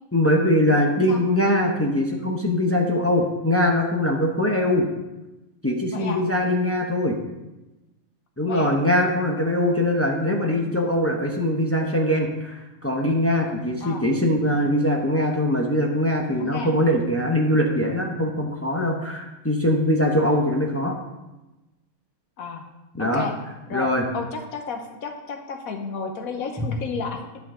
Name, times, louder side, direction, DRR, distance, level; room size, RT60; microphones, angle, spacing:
voice 1, 0.1-4.9 5.6-7.2 8.4-21.0 23.0-23.3 23.7-24.0 26.6-26.7, left 1 dB, 15° left, 0 dB, 0.5 m, -22 dB
voice 2, 16.4-16.7 22.4-22.6 23.0-23.3 23.7-27.2, left 5 dB, 70° left, 4 dB, 1.3 m, -32 dB
10.5 x 5.7 x 3.7 m, 1.0 s
omnidirectional pair, 1.6 m